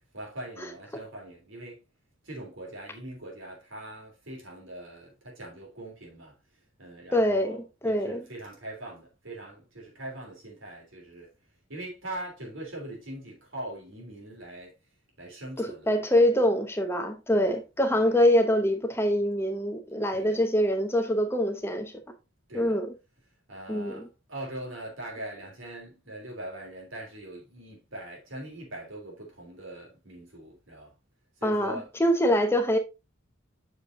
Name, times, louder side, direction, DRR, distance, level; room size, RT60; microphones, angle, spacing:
voice 1, 0.1-1.8 2.2-6.3 6.8-7.6 7.8-11.3 11.7-14.7 15.2-15.9 17.3-17.6 17.9-18.1 20.1-20.4 22.5-22.8 23.5-30.9 31.4-31.9, right 1 dB, 70° right, 3.4 m, -41 dB
voice 2, 7.1-7.6 7.8-8.3 15.6-21.9 22.5-22.9 23.7-24.1 31.4-32.8, equal, 10° left, 0.8 m, -24 dB
7.9 x 6.5 x 2.7 m
head